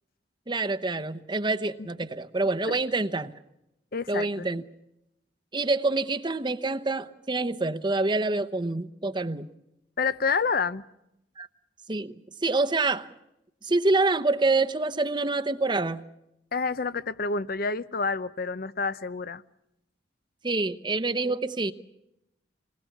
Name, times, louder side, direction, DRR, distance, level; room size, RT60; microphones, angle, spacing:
voice 1, 0.5-3.3 4.1-4.6 5.5-9.5 11.4-11.5 11.9-12.1 12.4-13.1 13.6-16.0 20.4-21.7, right 3 dB, 25° right, 9 dB, 0.9 m, -26 dB
voice 2, 3.9-4.5 10.0-10.8 16.5-19.4, left 4 dB, 55° left, 16 dB, 0.8 m, -28 dB
28.0 x 20.0 x 7.3 m, 0.86 s
head